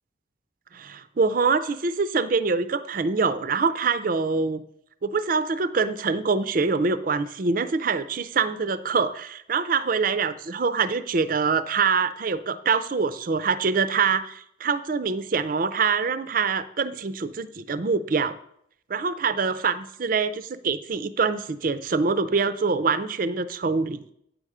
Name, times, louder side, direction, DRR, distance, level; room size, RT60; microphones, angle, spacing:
voice 1, 0.7-4.6 5.0-18.4 18.9-24.0, right 4 dB, 45° right, 13 dB, 0.4 m, -25 dB
9.2 x 6.6 x 4.9 m, 0.72 s
head